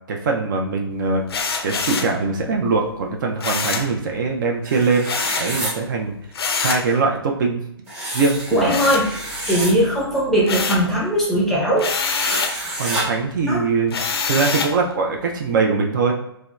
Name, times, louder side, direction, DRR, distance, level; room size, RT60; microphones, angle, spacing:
voice 1, 0.1-1.2 1.6-5.1 5.4-6.1 6.6-7.6 8.1-8.9 12.8-14.0 14.3-16.1, right 4 dB, 50° right, 1 dB, 0.4 m, -22 dB
sound 1, 1.3-2.2 3.4-3.9 5.0-5.5 6.3-6.9 8.7-9.5 9.9-10.9 11.8-12.6 13.9-14.8, left 5 dB, 70° left, 0.4 m, -25 dB
sound 2, 4.6-5.7 7.9-9.7 12.1-13.0, right 1 dB, 25° right, 1.1 m, -29 dB
voice 2, 8.5-9.1 9.5-11.9 13.5-13.7, equal, 5° left, -5 dB, 0.6 m, -19 dB
2.7 x 2.1 x 2.2 m, 0.78 s
hypercardioid pair, 130°, 13 cm